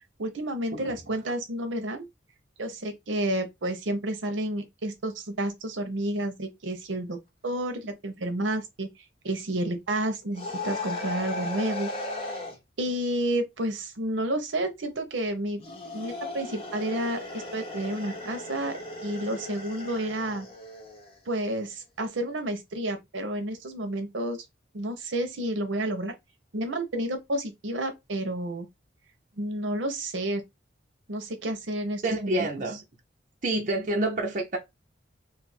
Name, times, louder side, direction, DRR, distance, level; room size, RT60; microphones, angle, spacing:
voice 1, 0.2-2.0 2.6-8.9 9.2-12.1 12.8-15.6 15.9-20.5 21.3-24.4 24.7-26.1 26.5-28.7 29.4-30.4 31.1-32.5, right 1 dB, 75° right, 0.7 m, -30 dB
sound 1, 10.3-12.6 15.6-21.2, left 2 dB, 30° left, 0.8 m, -36 dB
voice 2, 32.0-32.8 33.4-34.6, right 1 dB, 45° right, 0.7 m, -27 dB
2.6 x 2.5 x 4.1 m
head